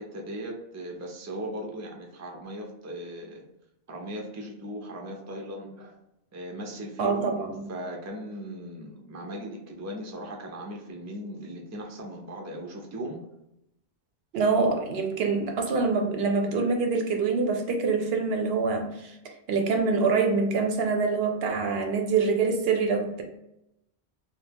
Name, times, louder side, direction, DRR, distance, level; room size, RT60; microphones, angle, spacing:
voice 1, 0.0-3.4 3.9-5.9 6.3-7.4 7.7-13.2, right 1 dB, 25° right, 0 dB, 0.4 m, -38 dB
voice 2, 7.0-7.7 14.3-19.2 19.5-23.2, right 4 dB, 75° right, 4 dB, 0.8 m, -25 dB
3.2 x 2.1 x 3.4 m, 0.85 s
omnidirectional pair, 1.1 m